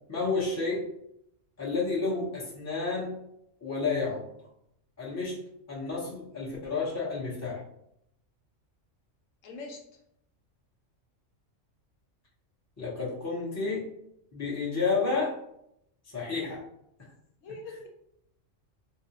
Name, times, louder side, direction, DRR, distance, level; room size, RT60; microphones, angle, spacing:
voice 1, 0.1-0.9 1.6-3.2 3.6-4.2 5.0-5.4 5.7-7.6 12.8-13.9 14.3-15.4 16.1-16.6, left 4 dB, 15° left, -6 dB, 0.8 m, -30 dB
voice 2, 9.4-10.0 17.4-17.9, left 3 dB, 85° left, 2 dB, 1.1 m, -42 dB
4.5 x 2.0 x 2.8 m, 0.77 s
omnidirectional pair, 1.3 m